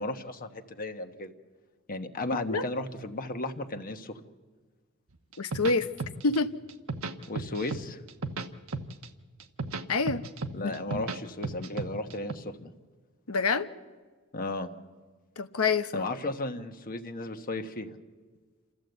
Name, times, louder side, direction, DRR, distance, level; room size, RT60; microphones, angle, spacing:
voice 1, 0.0-1.3 1.9-4.2 7.3-8.0 10.5-12.7 14.3-14.7 15.9-17.9, left 2 dB, 40° left, 1.2 m, -35 dB
sound 1, 5.3-6.4 6.7-7.8 8.1-9.1 9.4-11.2 11.4-12.3, right 3 dB, 70° right, 1.1 m, -34 dB
voice 2, 5.4-5.9 6.2-6.5 9.9-10.2 10.6-11.0 13.3-13.7 15.4-16.1, left 4 dB, 85° left, 1.0 m, -27 dB
28.0 x 14.0 x 8.0 m
head